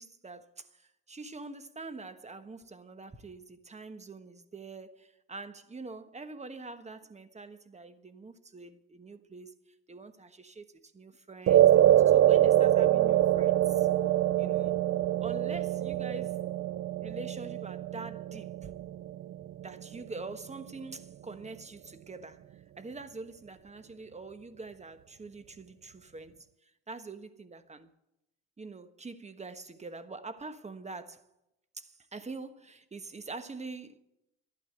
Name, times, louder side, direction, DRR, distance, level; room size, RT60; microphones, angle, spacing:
voice 1, 0.0-9.6 9.9-13.9 14.4-14.8 15.2-16.4 17.0-18.7 19.6-27.9 28.6-31.2 31.7-34.0, right 3 dB, 20° right, 1.2 m, -45 dB
sound 1, 11.5-20.0, right 12 dB, 50° right, 0.4 m, -25 dB
12.5 x 11.0 x 7.9 m
cardioid pair, 90°, 30 cm